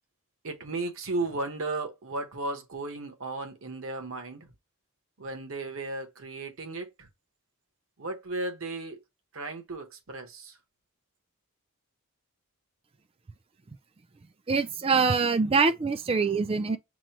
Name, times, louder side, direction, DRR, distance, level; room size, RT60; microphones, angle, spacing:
voice 1, 0.4-4.5 5.2-7.1 8.0-9.0 9.3-10.6, right 2 dB, 65° right, 0.9 m, -35 dB
voice 2, 14.5-16.8, right 4 dB, 25° right, 0.3 m, -24 dB
6.0 x 2.1 x 2.9 m
head